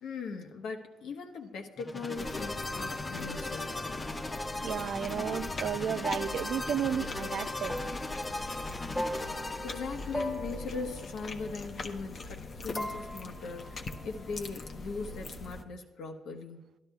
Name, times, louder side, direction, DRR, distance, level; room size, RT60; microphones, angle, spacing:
voice 1, 0.0-3.8 9.6-16.8, left 4 dB, 80° left, 1.1 m, -40 dB
sound 1, 1.8-10.3, left 2 dB, 25° left, 0.7 m, -38 dB
sound 2, 2.1-15.6, left 3 dB, 50° left, 0.8 m, -42 dB
sound 3, 3.6-12.5 12.8-14.8, equal, ahead, 1.2 m, -41 dB
voice 2, 4.6-7.7, right 8 dB, 70° right, 0.4 m, -33 dB
12.5 x 11.5 x 2.3 m
cardioid pair, 75°, 0 cm